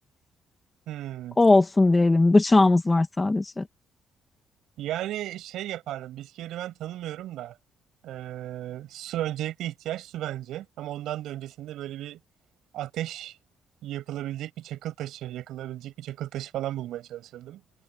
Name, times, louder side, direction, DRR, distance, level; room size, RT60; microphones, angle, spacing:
voice 1, 0.9-1.4 4.8-7.6 8.0-12.2 12.7-13.4 13.8-17.6, right 13 dB, 85° right, 6.9 m, -35 dB
voice 2, 1.4-3.6, left 2 dB, 20° left, 2.4 m, -19 dB
cardioid pair, 90°, 0 cm